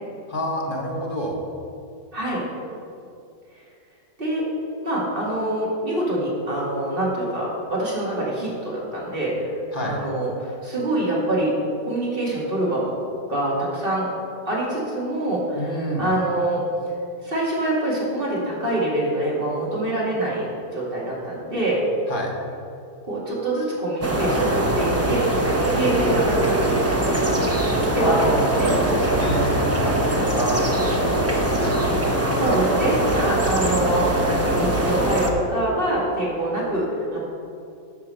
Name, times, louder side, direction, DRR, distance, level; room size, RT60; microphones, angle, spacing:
voice 1, 0.3-1.4 9.7-10.0 15.5-16.1 22.1-22.3 28.0-31.7, equal, 35° left, -1 dB, 1.4 m, -27 dB
voice 2, 4.8-9.5 9.8-11.5 11.8-12.9 13.3-14.1 14.5-16.6 17.2-20.5 20.7-21.8 23.0-26.8 27.1-27.5 27.9-28.7 32.3-37.2, right 1 dB, 35° right, -5 dB, 2.4 m, -25 dB
sound 1, 24.0-35.3, right 1 dB, 15° right, 0.5 m, -22 dB
9.8 x 5.6 x 6.7 m, 2.5 s
omnidirectional pair, 1.7 m